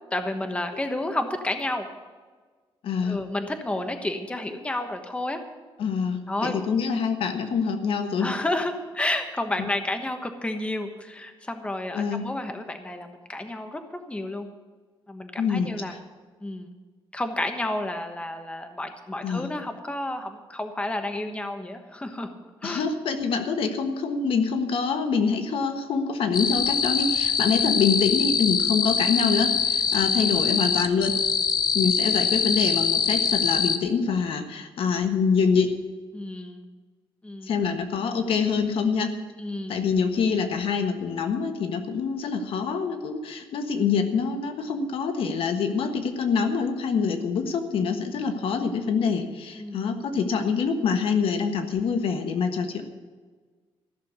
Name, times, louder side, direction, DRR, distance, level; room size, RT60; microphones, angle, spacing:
voice 1, 0.1-1.9 3.0-5.4 6.3-6.5 8.2-14.5 15.1-15.9 16.4-16.7 17.1-22.3 22.6-22.9 36.1-36.7 37.2-37.5 39.4-39.8 49.5-49.8, left 1 dB, 10° left, 6 dB, 1.2 m, -31 dB
voice 2, 2.8-3.2 5.8-8.3 11.9-12.3 15.4-16.0 19.2-19.5 22.6-31.1 31.7-35.7 37.4-39.1 39.7-52.8, left 5 dB, 70° left, 7 dB, 1.4 m, -25 dB
sound 1, 26.3-33.8, left 6 dB, 45° left, 0.8 m, -24 dB
14.5 x 6.8 x 9.5 m, 1.4 s
cardioid pair, 130°, 10 cm